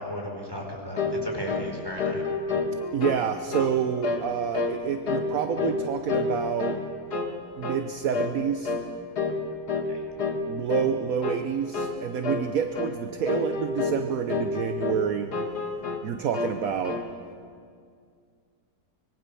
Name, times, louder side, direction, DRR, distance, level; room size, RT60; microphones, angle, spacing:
voice 1, 0.0-2.2 9.9-10.0, equal, 15° right, 0 dB, 4.5 m, -35 dB
sound 1, 1.0-1.2 1.5-1.7 2.0-3.2 3.5-3.8 4.0-4.3 4.5-4.8 5.1-5.8 6.1-6.8 7.1-7.3 7.6-7.8 8.1-8.4 8.6-8.9 9.2-9.4 9.7-9.9 10.2-10.4 10.7-10.9 11.2-11.4 11.7-12.0 12.2-12.5 12.7-12.9 13.3-14.0 14.3-15.0 15.3-16.0 16.3-17.1, left 4 dB, 70° left, 2.5 m, -29 dB
voice 2, 2.9-6.8 7.6-8.7 10.5-15.3 16.0-17.0, right 8 dB, 60° right, 8 dB, 1.2 m, -28 dB
25.0 x 22.0 x 7.0 m, 2.2 s
omnidirectional pair, 1.8 m